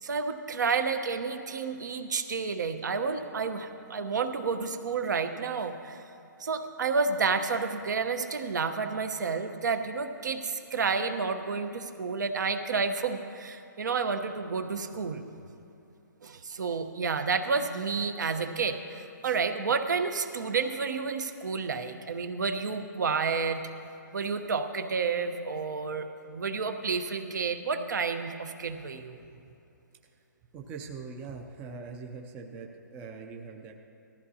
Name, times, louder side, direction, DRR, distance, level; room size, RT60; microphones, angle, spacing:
voice 1, 0.0-6.0 6.4-15.2 16.2-23.7 24.1-29.2, right 5 dB, 65° right, 8 dB, 1.0 m, -30 dB
voice 2, 30.5-33.7, right 5 dB, 15° right, 2 dB, 0.5 m, -42 dB
19.0 x 14.0 x 2.8 m, 2.7 s
hypercardioid pair, 160°, 11 cm